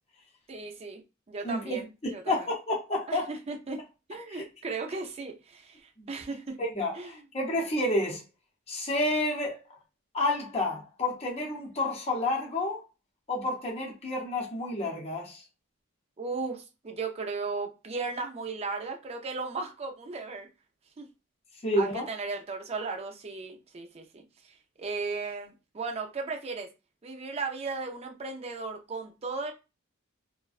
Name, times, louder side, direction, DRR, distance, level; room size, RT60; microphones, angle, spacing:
voice 1, 0.5-1.0 1.3-2.5 3.1-3.8 4.1-6.6 6.9-7.1 16.2-20.5 21.0-21.1 21.8-26.7 27.0-29.5, right 4 dB, 30° right, 0.4 m, -36 dB
voice 2, 1.4-1.8 2.3-3.3 4.3-4.4 6.6-8.2 8.7-9.6 10.1-12.8 13.3-15.4 21.6-22.0, left 1 dB, 30° left, 0.6 m, -30 dB
2.4 x 2.1 x 2.3 m
head